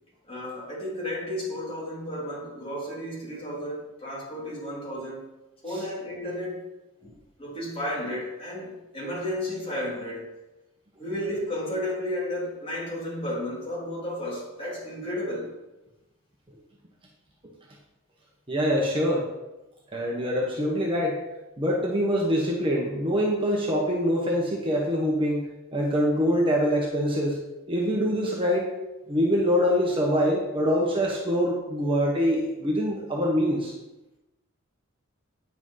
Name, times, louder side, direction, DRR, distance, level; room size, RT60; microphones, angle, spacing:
voice 1, 0.3-5.3 5.6-6.7 7.4-10.3 11.0-15.5, left 1 dB, 25° left, -5 dB, 3.3 m, -33 dB
voice 2, 18.5-19.3 19.9-21.2 21.6-27.4 27.7-28.7 29.1-33.7, equal, 25° right, -2 dB, 1.3 m, -24 dB
9.5 x 6.0 x 5.8 m, 1.0 s
head